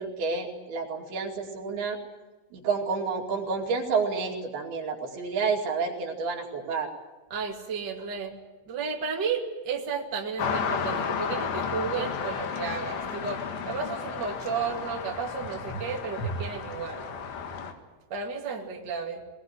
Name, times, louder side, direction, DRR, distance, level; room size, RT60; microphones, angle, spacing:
voice 1, 0.0-2.0 2.5-6.9, right 4 dB, 65° right, 1 dB, 4.3 m, -29 dB
voice 2, 7.3-8.4 8.7-17.1 18.1-19.2, right 5 dB, 30° right, 0 dB, 2.3 m, -33 dB
sound 1, 10.4-17.7, left 5 dB, 80° left, 4.0 m, -32 dB
21.0 x 19.5 x 9.8 m, 1.2 s
omnidirectional pair, 4.9 m